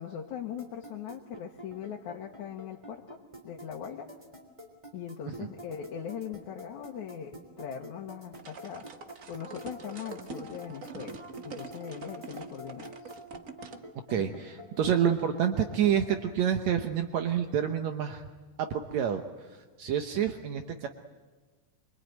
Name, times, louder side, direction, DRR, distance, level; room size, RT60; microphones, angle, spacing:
voice 1, 0.0-4.1 4.9-8.9 9.3-13.0 14.1-14.4, left 8 dB, 80° left, -1 dB, 2.7 m, -40 dB
sound 1, 0.6-16.2, right 1 dB, 10° right, 3.5 m, -46 dB
sound 2, 8.3-13.8, right 4 dB, 50° right, 0.9 m, -45 dB
voice 2, 14.1-18.2 18.6-19.2 19.8-20.9, right 9 dB, 70° right, 6 dB, 2.3 m, -28 dB
24.5 x 24.0 x 9.2 m, 1.3 s
omnidirectional pair, 3.3 m